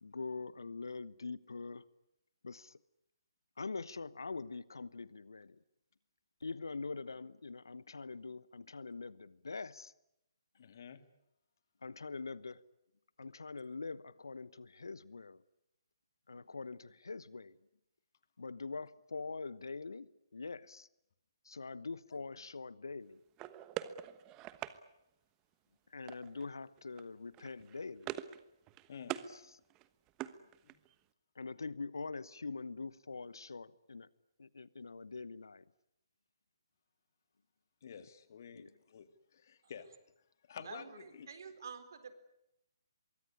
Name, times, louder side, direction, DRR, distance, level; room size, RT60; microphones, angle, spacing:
voice 1, 0.0-1.9 2.4-2.8 3.6-5.6 6.4-9.9 11.8-12.6 13.2-15.4 16.3-17.6 18.4-20.9 21.4-23.2 25.9-28.1 29.3-29.6 31.3-34.1 34.4-35.7 38.0-38.1 38.5-38.7, left 4 dB, 70° left, 1.1 m, -44 dB
voice 2, 10.5-11.0 28.9-29.2 30.6-30.8 37.8-39.9 40.5-41.3, left 7 dB, 50° left, 2.3 m, -50 dB
sound 1, 23.4-24.8 26.1-26.5 26.8-27.0 27.3-28.4 28.7-29.3 29.7-30.9, right 13 dB, 20° right, 1.2 m, -44 dB
voice 3, 40.6-42.1, right 6 dB, 55° right, 4.0 m, -49 dB
24.5 x 23.5 x 10.0 m
figure-of-eight pair, 135°, 2 cm